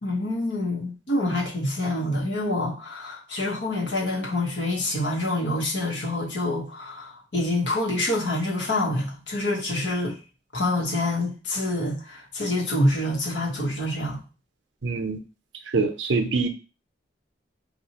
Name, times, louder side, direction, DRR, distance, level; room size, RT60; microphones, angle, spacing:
voice 1, 0.0-10.2 10.5-14.2, left 1 dB, 75° left, 1.2 m, -26 dB
voice 2, 14.8-15.2 15.7-16.5, right 4 dB, 85° right, 0.6 m, -24 dB
4.2 x 2.3 x 2.9 m
head